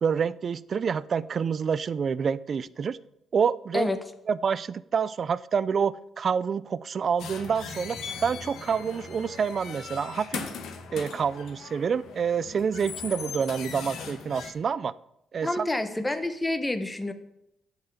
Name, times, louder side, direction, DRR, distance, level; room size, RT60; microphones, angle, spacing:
voice 1, 0.0-3.0 3.3-3.9 4.3-10.4 10.9-14.9 15.3-15.7, right 6 dB, 50° right, 19 dB, 0.4 m, -27 dB
sound 1, 7.2-14.5, left 6 dB, 75° left, 1.5 m, -39 dB
voice 2, 15.4-17.1, left 2 dB, 15° left, 9 dB, 1.2 m, -28 dB
10.5 x 5.7 x 8.1 m, 0.80 s
cardioid pair, 90°, 0 cm